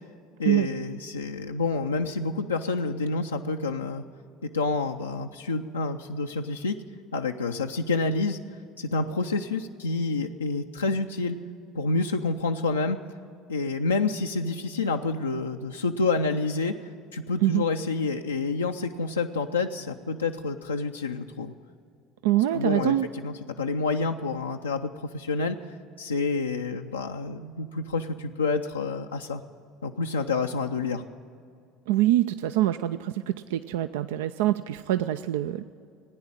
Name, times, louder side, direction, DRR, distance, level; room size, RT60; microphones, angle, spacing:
voice 1, 0.4-4.0 4.4-6.8 7.1-8.4 8.8-11.4 11.7-13.0 13.5-21.5 22.5-25.6 26.0-29.4 29.8-31.0, left 3 dB, 90° left, 2 dB, 0.4 m, -28 dB
voice 2, 22.2-23.1 31.9-35.6, right 14 dB, 75° right, 11 dB, 0.3 m, -24 dB
16.0 x 9.6 x 8.8 m, 2.4 s
hypercardioid pair, 70°, 0 cm